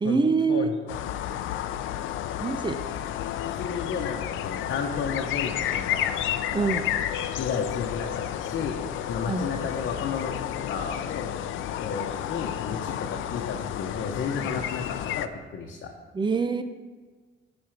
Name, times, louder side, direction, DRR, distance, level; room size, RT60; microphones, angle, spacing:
voice 1, 0.0-0.7 2.4-2.8 6.5-6.9 9.3-9.7 16.1-16.6, right 4 dB, 25° right, 9 dB, 0.8 m, -25 dB
sound 1, 0.9-15.3, left 11 dB, 85° left, 0.5 m, -31 dB
voice 2, 3.6-6.3 7.4-8.8 9.1-10.3 10.7-11.3 11.8-15.9, left 6 dB, 65° left, 1 dB, 1.0 m, -32 dB
11.5 x 4.4 x 5.9 m, 1.4 s
cardioid pair, 90°, 20 cm